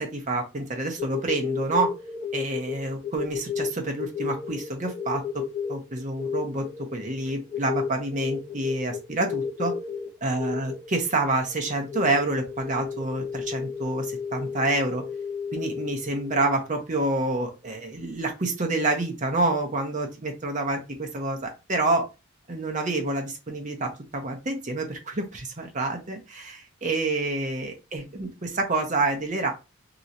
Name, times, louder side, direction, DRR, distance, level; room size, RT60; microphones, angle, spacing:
voice 1, 0.0-1.9 2.3-5.4 5.7-6.6 6.9-9.7 10.2-15.0 15.5-22.1 22.5-29.5, right 2 dB, 35° right, 3 dB, 0.8 m, -28 dB
sound 1, 1.0-16.7, left 6 dB, 30° left, 1.5 m, -33 dB
3.1 x 2.9 x 2.6 m, 0.28 s
head